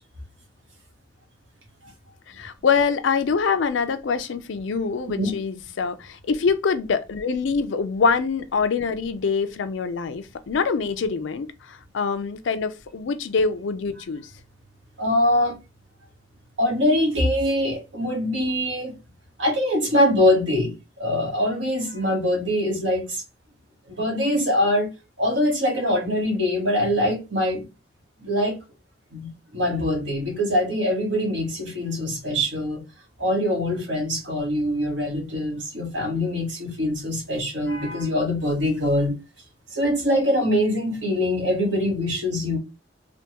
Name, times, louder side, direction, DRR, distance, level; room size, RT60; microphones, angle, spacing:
voice 1, 2.3-14.3, left 5 dB, 75° left, 0.4 m, -24 dB
voice 2, 15.0-15.6 16.6-19.0 19.4-23.2 23.9-24.9 25.2-27.7 28.2-28.6 29.1-32.8 33.2-39.2 39.7-42.6, left 1 dB, 70° right, 1.3 m, -23 dB
3.4 x 2.2 x 2.9 m
head